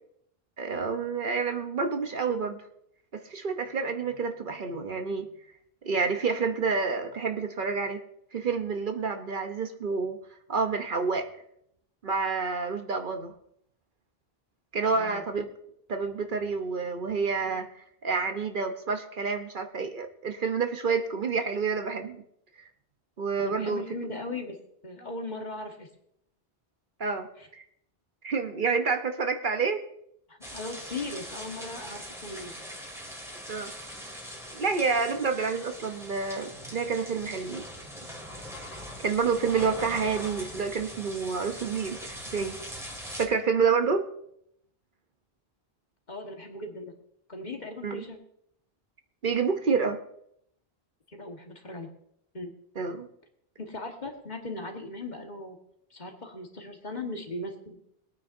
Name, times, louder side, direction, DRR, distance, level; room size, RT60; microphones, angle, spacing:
voice 1, 0.6-2.6 3.1-5.3 5.8-8.0 8.3-10.2 10.5-11.3 12.0-13.3 14.7-15.5 15.9-17.7 18.0-22.2 22.6-22.7 23.2-23.8 27.0-27.3 28.2-29.8 33.5-33.7 34.5-37.6 39.0-42.6 43.2-44.1 47.8-48.0 49.2-50.0 52.8-53.1, right 5 dB, 55° right, 6 dB, 1.0 m, -28 dB
voice 2, 14.9-15.2 23.4-24.6 24.8-25.9 27.4-27.5 30.3-32.5 46.1-46.9 47.3-48.2 51.1-51.9 52.3-52.5 53.6-55.6 55.9-57.8, left 2 dB, 45° left, 2 dB, 1.6 m, -38 dB
sound 1, 30.4-43.3, equal, 5° right, 2.0 m, -42 dB
21.5 x 9.4 x 2.6 m, 0.72 s
omnidirectional pair, 1.0 m